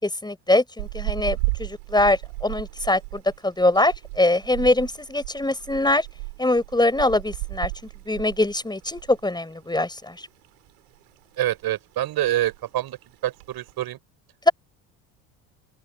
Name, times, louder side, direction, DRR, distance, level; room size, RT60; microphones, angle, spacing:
voice 1, 0.0-6.1 6.4-7.7 8.1-10.3, left 2 dB, 10° left, 6.3 m, -23 dB
sound 1, 0.8-9.3 9.6-9.8 10.2-11.0 11.3-11.7 12.0-12.1 12.2-12.7 13.2-13.7, right 31 dB, 85° right, 3.8 m, -34 dB
voice 2, 11.4-14.0, right 13 dB, 55° right, 6.6 m, -26 dB
open air
supercardioid pair, 85°, 43 cm